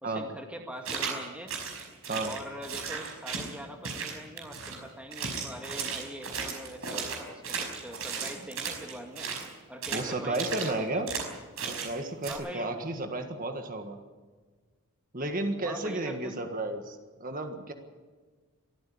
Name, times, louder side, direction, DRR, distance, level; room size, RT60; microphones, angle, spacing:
voice 1, 0.0-1.5 2.2-9.3 9.7-11.0 12.3-12.7 15.6-16.4, equal, 5° right, 3 dB, 2.1 m, -43 dB
sound 1, 0.8-1.2 1.5-3.5 3.8-4.8 5.1-9.5 9.8-10.1 10.3-10.7 11.1-11.3 11.6-11.9 12.2-12.3, right 5 dB, 70° right, 5.3 m, -35 dB
voice 2, 9.9-11.1 11.7-14.0 15.1-17.7, right 2 dB, 40° right, 5 dB, 1.7 m, -33 dB
23.0 x 14.5 x 8.6 m, 1.4 s
head